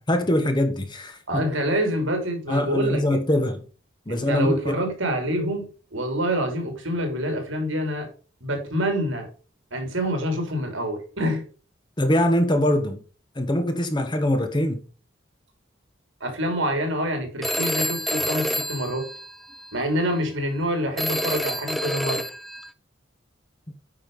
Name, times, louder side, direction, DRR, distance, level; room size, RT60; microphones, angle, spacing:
voice 1, 0.1-1.4 2.5-3.6 4.1-4.8 12.0-13.0 13.3-14.8, left 1 dB, 25° left, 1.2 m, -23 dB
voice 2, 1.3-3.2 4.1-8.1 8.4-9.3 9.7-11.4 16.2-19.0 19.7-22.2, equal, 75° right, 3.0 m, -26 dB
Telephone, 17.4-19.8 21.0-22.7, equal, ahead, 0.3 m, -28 dB
9.2 x 5.1 x 5.3 m
head